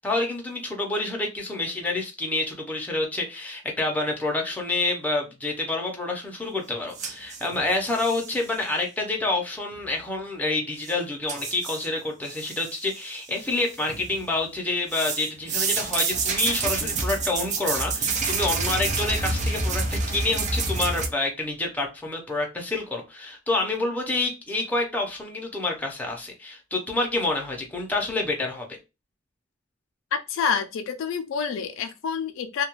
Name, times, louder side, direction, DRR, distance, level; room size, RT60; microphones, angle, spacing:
voice 1, 0.0-28.7, left 2 dB, 10° left, 0.6 m, -28 dB
sound 1, 6.9-8.4 10.8-10.9 11.3-11.9 12.2-13.0 13.4-14.2 14.9-21.1, right 4 dB, 35° right, 0.4 m, -28 dB
voice 2, 30.1-32.6, left 6 dB, 70° left, 0.3 m, -28 dB
2.3 x 2.2 x 2.9 m
head